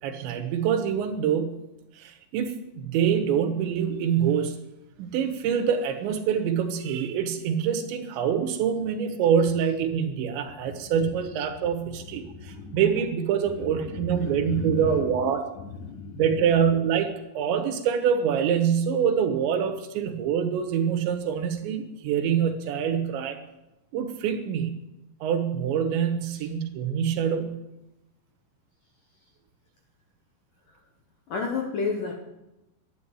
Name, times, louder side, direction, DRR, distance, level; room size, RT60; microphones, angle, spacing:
voice 1, 0.0-1.6 1.9-4.6 5.0-15.5 16.2-23.4 23.9-24.7 25.2-27.6, right 8 dB, 75° right, 7 dB, 3.5 m, -25 dB
voice 2, 12.2-12.8 13.5-15.0 15.6-16.2 31.3-32.2, left 5 dB, 65° left, 1 dB, 2.2 m, -32 dB
11.5 x 10.5 x 8.5 m, 0.94 s
omnidirectional pair, 5.3 m